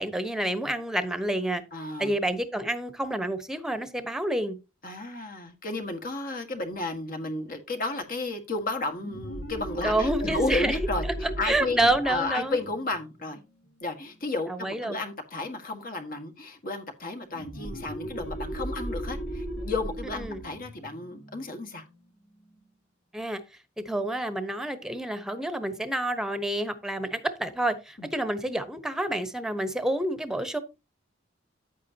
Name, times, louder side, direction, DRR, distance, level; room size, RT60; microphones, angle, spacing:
voice 1, 0.0-1.6 2.0-4.6 9.8-10.8 11.4-12.6 14.5-15.0 20.2-20.4 23.1-23.4 23.8-30.6, right 1 dB, 5° right, 1.0 m, -28 dB
voice 2, 1.7-2.1 4.8-13.4 13.8-21.8 28.0-28.1, left 2 dB, 45° left, 1.7 m, -33 dB
sound 1, 8.9-14.3 17.3-22.6, equal, 85° left, 3.5 m, -37 dB
9.9 x 8.3 x 2.8 m
head